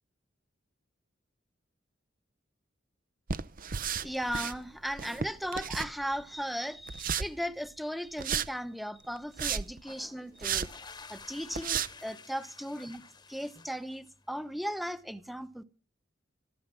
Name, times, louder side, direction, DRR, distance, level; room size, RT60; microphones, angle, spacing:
sound 1, 3.3-4.6 4.9-6.2 6.9-7.3 8.2-8.5 9.2-9.8 10.4-10.7 11.2-11.3 11.5-11.9, right 7 dB, 45° right, 0.6 m, -33 dB
voice 1, 4.0-10.7 11.1-13.0 13.3-15.6, equal, ahead, 0.9 m, -37 dB
sound 2, 9.8-14.3, left 4 dB, 20° left, 1.1 m, -51 dB
14.0 x 13.5 x 6.1 m
head